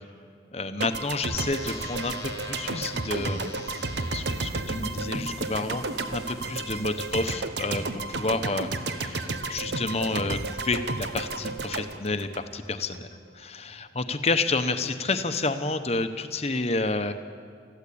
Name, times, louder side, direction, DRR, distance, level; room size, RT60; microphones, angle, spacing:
voice 1, 0.5-3.5 4.1-12.3 12.5-13.1 13.3-17.1, left 3 dB, 35° left, 8 dB, 0.9 m, -30 dB
sound 1, 0.8-13.0, right 3 dB, 70° right, 1.0 m, -32 dB
sound 2, 1.3-7.3, left 3 dB, 15° left, 1.7 m, -45 dB
sound 3, 4.6-11.6, equal, 30° right, 5.1 m, -47 dB
21.0 x 14.5 x 8.6 m, 2.1 s
head